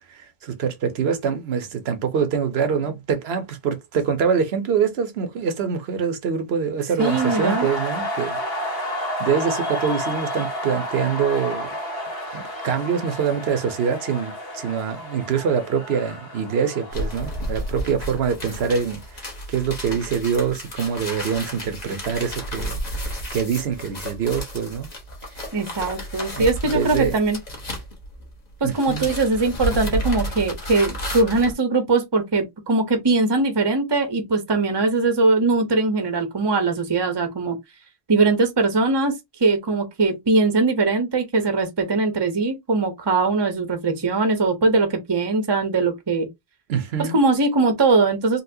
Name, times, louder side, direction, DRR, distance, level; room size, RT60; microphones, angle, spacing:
voice 1, 0.1-8.9 9.2-11.7 12.3-22.8 23.1-24.9 25.4-25.5 26.3-26.5 26.7-27.1 28.6-29.1 46.7-47.2, right 6 dB, 80° right, 1.0 m, -25 dB
sound 1, 7.0-18.7, equal, 75° left, 1.6 m, -31 dB
voice 2, 7.0-7.7 25.5-27.4 28.6-37.6 38.1-46.3 47.0-48.4, right 3 dB, 30° right, 0.7 m, -21 dB
sound 2, 16.9-28.4 28.6-31.5, equal, 45° left, 1.2 m, -32 dB
4.1 x 2.2 x 2.6 m
omnidirectional pair, 1.0 m